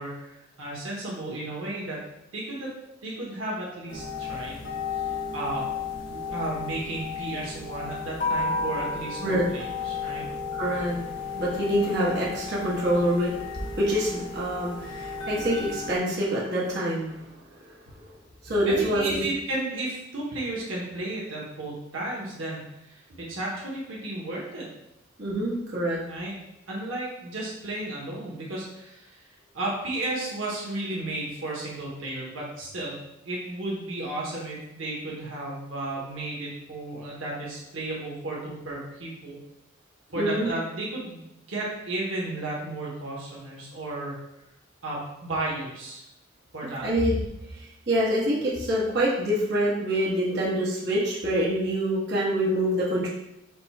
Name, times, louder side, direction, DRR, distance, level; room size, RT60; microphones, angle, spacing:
voice 1, 0.0-2.0 2.3-2.7 3.0-5.7 6.1-10.3 18.6-24.7 26.1-26.3 26.7-29.3 29.5-33.0 33.2-39.4 40.1-44.2 44.8-46.0 46.5-46.9, right 2 dB, 90° right, -4 dB, 1.2 m, -33 dB
sound 1, 3.9-16.0, left 4 dB, 65° left, 0.9 m, -33 dB
voice 2, 10.6-11.0 11.2-13.4 13.7-17.2 18.4-19.2 25.2-26.0 40.2-40.5 46.8-47.2 47.6-53.1, equal, 55° right, -6 dB, 1.3 m, -26 dB
5.2 x 2.4 x 4.2 m, 0.88 s
head